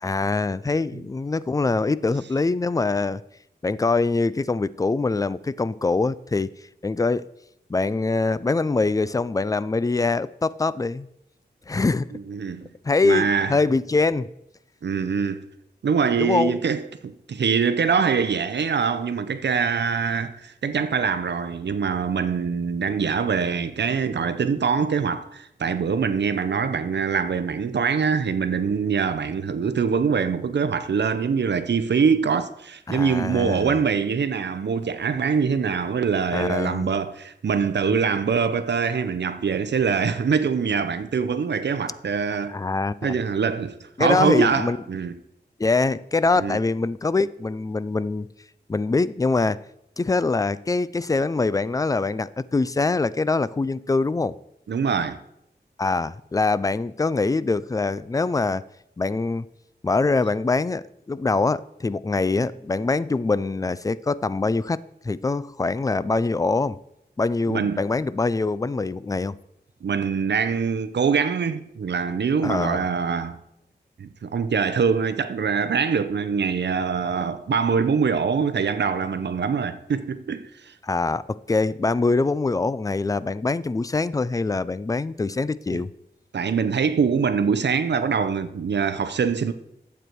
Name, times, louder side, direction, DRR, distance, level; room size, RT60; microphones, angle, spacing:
voice 1, 0.0-3.2 3.6-6.5 6.8-7.3 7.7-11.1 11.7-12.1 12.8-14.3 16.2-16.6 32.9-33.7 36.3-36.9 37.9-38.0 42.5-43.2 44.0-44.8 45.6-48.3 48.7-49.6 50.0-54.4 55.8-58.6 59.0-59.5 59.8-66.8 67.2-69.4 72.4-72.9 80.8-85.9, left 3 dB, 20° left, 0.3 m, -24 dB
voice 2, 12.1-12.7 13.0-13.6 14.8-15.5 15.8-42.6 43.0-45.2 46.4-46.6 54.7-55.2 67.5-67.8 69.8-73.4 74.0-80.7 85.7-85.8 86.3-89.5, right 6 dB, 75° right, 0.7 m, -24 dB
12.0 x 8.1 x 4.6 m
wide cardioid pair, 115°, 18 cm